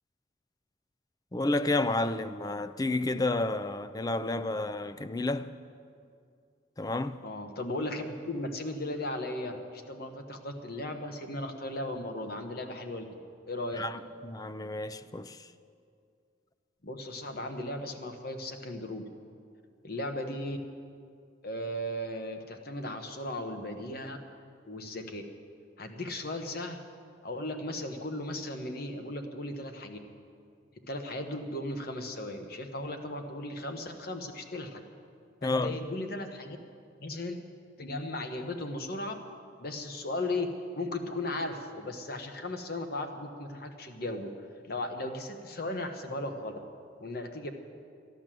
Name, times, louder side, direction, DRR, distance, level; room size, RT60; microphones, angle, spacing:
voice 1, 1.3-5.5 6.8-7.2 13.8-15.5 35.4-35.7, left 2 dB, 20° left, 0.4 m, -31 dB
voice 2, 7.2-13.0 13.5-13.9 16.8-19.1 19.8-20.6 21.4-24.2 24.7-25.2 25.8-26.8 27.2-30.0 30.9-34.8 35.4-36.6 37.0-37.4 37.8-39.2 39.6-40.5 40.7-44.3 44.7-46.5 47.0-47.5, left 1 dB, 55° left, 1.2 m, -36 dB
13.5 x 11.0 x 7.6 m
head